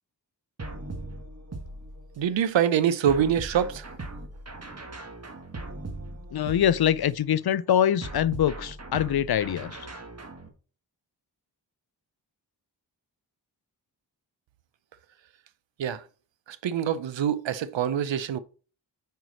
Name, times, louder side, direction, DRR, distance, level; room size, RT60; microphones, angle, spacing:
sound 1, 0.6-2.3 3.1-7.2 8.0-10.5, right 2 dB, 35° right, 1.5 m, -39 dB
voice 1, 2.2-3.9 15.8-16.0 16.5-18.4, right 9 dB, 85° right, 0.6 m, -25 dB
voice 2, 6.3-9.9, left 10 dB, 60° left, 0.5 m, -24 dB
5.0 x 4.6 x 6.2 m
cardioid pair, 45°, 44 cm